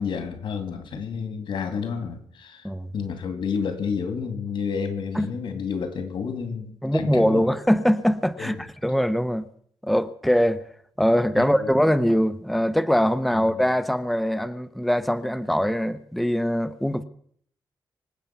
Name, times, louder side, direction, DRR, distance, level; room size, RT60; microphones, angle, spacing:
voice 1, 0.0-7.4 8.4-8.6 11.4-11.7 13.3-13.6, left 6 dB, 85° left, 2.4 m, -30 dB
voice 2, 6.8-9.4 9.8-10.6 11.0-17.0, equal, ahead, 0.8 m, -22 dB
25.0 x 8.4 x 5.9 m
cardioid pair, 105°, 8 cm